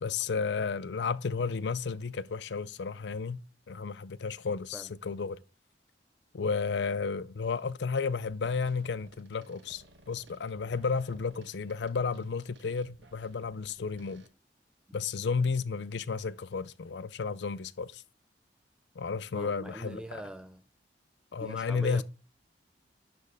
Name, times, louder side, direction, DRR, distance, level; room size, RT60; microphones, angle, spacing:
voice 1, 0.0-3.4 3.7-5.4 6.3-14.2 14.9-18.0 19.0-20.0 21.3-22.0, left 5 dB, 75° left, 0.5 m, -32 dB
sound 1, 7.4-7.7 8.0-14.3, right 2 dB, 85° right, 1.2 m, -58 dB
voice 2, 19.3-20.6 21.4-22.0, right 1 dB, 5° right, 0.3 m, -42 dB
11.0 x 4.4 x 3.5 m
head